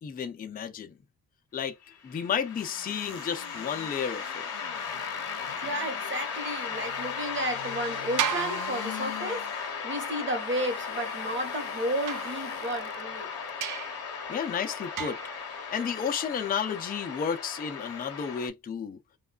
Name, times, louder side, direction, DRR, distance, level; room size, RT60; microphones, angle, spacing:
voice 1, 0.0-0.9 1.5-4.4 14.3-15.2 15.7-19.0, left 7 dB, 25° left, 0.4 m, -32 dB
sound 1, 2.1-18.5, left 6 dB, 40° left, 0.7 m, -36 dB
sound 2, 2.5-13.0 13.5-13.6, left 12 dB, 85° left, 0.5 m, -45 dB
voice 2, 5.6-13.3, right 1 dB, 30° right, 0.9 m, -33 dB
sound 3, 8.2-9.6 12.1-13.0 13.6-14.1 15.0-15.5, right 9 dB, 60° right, 0.4 m, -34 dB
3.1 x 2.3 x 2.2 m
wide cardioid pair, 140°, 36 cm